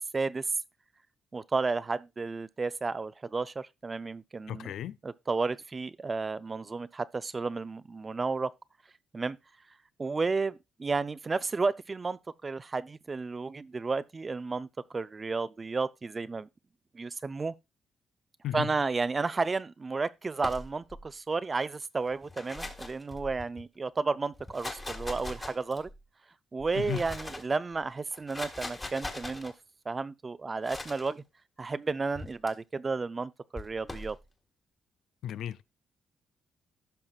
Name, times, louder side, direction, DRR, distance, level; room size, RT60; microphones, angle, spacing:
voice 1, 0.1-0.5 1.3-4.7 5.0-8.5 9.1-9.4 10.0-14.7 14.9-16.5 16.9-17.5 18.5-25.9 26.5-29.5 29.9-31.2 31.6-34.2, right 4 dB, 30° right, 0.4 m, -32 dB
voice 2, 4.5-5.0 18.4-18.7 26.8-27.0 35.2-35.6, left 11 dB, 75° left, 0.4 m, -35 dB
sound 1, 20.4-21.0 22.1-23.6 24.3-26.0 26.6-27.5 28.1-29.5 30.6-31.1 32.1-32.5 33.5-34.1, left 2 dB, 20° left, 1.6 m, -41 dB
16.0 x 5.7 x 2.4 m
cardioid pair, 90°, 0 cm